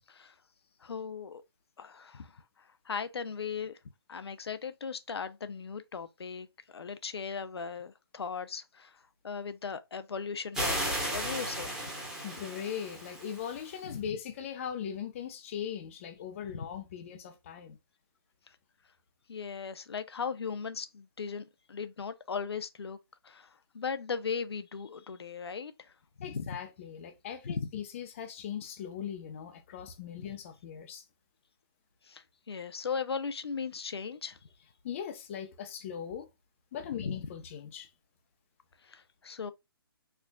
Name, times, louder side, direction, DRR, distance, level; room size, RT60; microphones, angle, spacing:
voice 1, 0.8-1.4 1.8-2.3 2.9-3.7 4.1-6.5 6.7-8.9 9.2-11.7 19.3-23.0 23.2-23.5 23.7-25.7 26.3-26.4 27.4-27.7 32.1-34.4 37.0-37.1 38.9-39.5, left 6 dB, 85° left, 0.5 m, -37 dB
sound 1, 10.5-13.8, right 1 dB, 5° right, 1.1 m, -35 dB
voice 2, 12.2-17.8 26.2-31.0 34.8-36.3 36.7-37.9, left 8 dB, 30° left, 0.6 m, -39 dB
4.5 x 2.4 x 2.2 m
hypercardioid pair, 155°, 13 cm